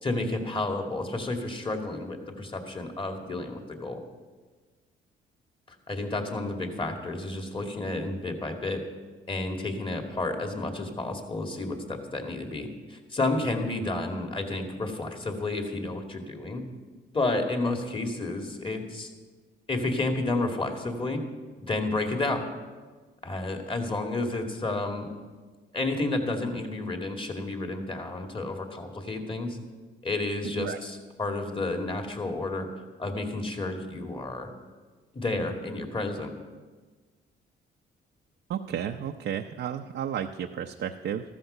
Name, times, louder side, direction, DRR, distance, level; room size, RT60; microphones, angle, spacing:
voice 1, 0.0-4.0 5.7-8.8 9.3-16.6 17.1-19.1 19.7-21.2 21.6-22.4 23.2-25.1 25.7-29.6 30.0-32.7 33.0-34.5 35.1-36.3, left 2 dB, 25° left, 3 dB, 2.4 m, -31 dB
voice 2, 38.5-41.2, right 9 dB, 65° right, 3 dB, 0.7 m, -32 dB
14.0 x 13.5 x 5.7 m, 1.4 s
cardioid pair, 90°, 20 cm